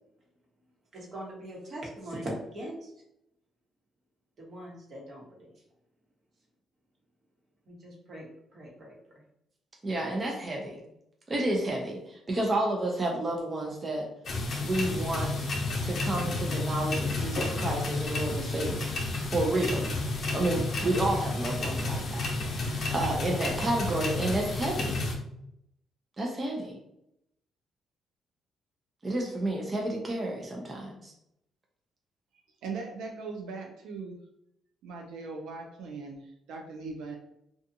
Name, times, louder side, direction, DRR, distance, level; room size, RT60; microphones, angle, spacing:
voice 1, 0.9-2.9 4.4-5.4 7.7-9.0, right 1 dB, 50° right, -3 dB, 1.0 m, -41 dB
voice 2, 9.8-10.8 11.3-14.1 14.6-15.3 15.8-18.9 19.3-19.9 20.3-22.2 22.5-25.0 26.2-26.8 29.0-31.1, right 1 dB, 30° right, 0 dB, 0.5 m, -30 dB
sound 1, 14.2-25.1, left 2 dB, 55° left, 0.7 m, -31 dB
voice 3, 32.6-34.2 34.8-37.2, right 4 dB, 90° right, 1 dB, 0.4 m, -39 dB
2.6 x 2.3 x 2.6 m, 0.79 s
cardioid pair, 90°, 0 cm